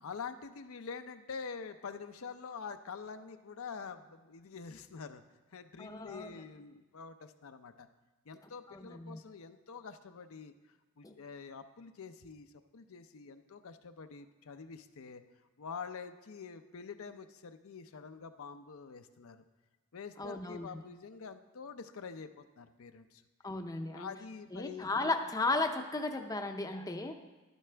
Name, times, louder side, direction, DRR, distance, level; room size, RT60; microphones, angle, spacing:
voice 1, 0.0-5.2 5.5-7.9 8.3-10.5 11.0-15.2 15.6-19.4 19.9-23.2 23.9-24.9, left 5 dB, 70° left, 9 dB, 0.6 m, -46 dB
voice 2, 5.8-6.3 8.7-9.2 11.0-11.1 20.2-20.7 23.4-24.1 24.5-27.2, left 3 dB, 15° left, 5 dB, 0.5 m, -35 dB
12.0 x 11.5 x 3.4 m, 1.2 s
head